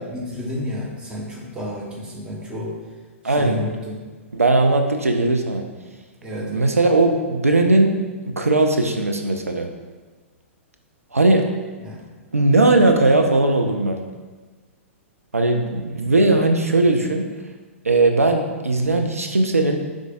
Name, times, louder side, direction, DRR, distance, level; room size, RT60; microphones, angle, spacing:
voice 1, 0.1-2.7 3.2-4.0 6.2-6.6 11.8-12.0, left 1 dB, 10° right, -3 dB, 0.9 m, -31 dB
voice 2, 3.2-3.6 4.3-5.7 6.4-7.9 8.2-9.7 11.1-11.5 12.3-14.0 15.3-17.2 17.8-19.8, right 2 dB, 85° right, 4 dB, 0.4 m, -18 dB
5.0 x 3.6 x 2.4 m, 1.4 s
figure-of-eight pair, 110°, 7 cm